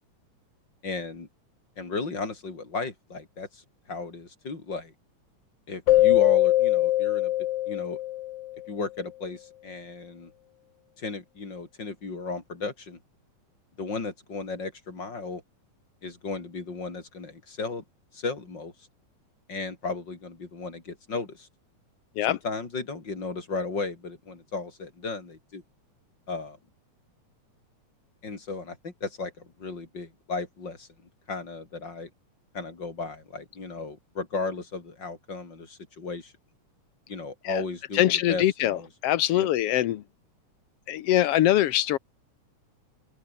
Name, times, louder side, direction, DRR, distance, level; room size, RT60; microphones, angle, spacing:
voice 1, 0.8-1.3 1.8-3.6 3.9-4.9 5.7-7.3 7.7-8.0 8.7-10.3 11.0-13.0 13.8-15.4 16.0-17.8 18.1-18.7 19.5-21.5 22.3-25.6 26.3-26.6 28.2-30.9 31.3-32.1 32.5-36.3 37.1-38.9 39.3-39.5, left 4 dB, 35° left, 4.7 m, -35 dB
Keyboard (musical), 5.9-8.6, left 15 dB, 85° left, 1.3 m, -22 dB
voice 2, 37.9-40.0 40.9-42.0, left 13 dB, 65° left, 1.6 m, -23 dB
open air
omnidirectional pair, 3.6 m